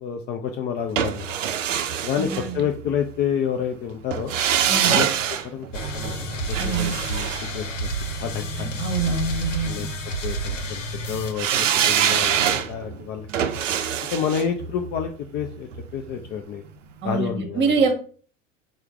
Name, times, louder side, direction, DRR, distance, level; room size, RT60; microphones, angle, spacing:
voice 1, 0.0-1.3 2.0-4.4 4.8-5.7 5.9-7.9 8.2-8.8 9.4-9.9 10.2-13.6 14.1-16.6 17.0-17.8, left 8 dB, 30° left, 4 dB, 0.4 m, -29 dB
sound 1, 1.0-3.1 4.1-8.4 11.4-16.4 16.7-16.8, right 9 dB, 75° right, 0.5 m, -25 dB
voice 2, 2.1-2.7 4.7-5.0 6.6-6.9 8.8-9.9 17.0-17.9, right 4 dB, 30° right, 5 dB, 1.1 m, -25 dB
sound 2, 5.7-11.3, right 2 dB, 75° left, 0.8 m, -30 dB
4.4 x 2.1 x 4.7 m, 0.42 s
figure-of-eight pair, 75°, 38 cm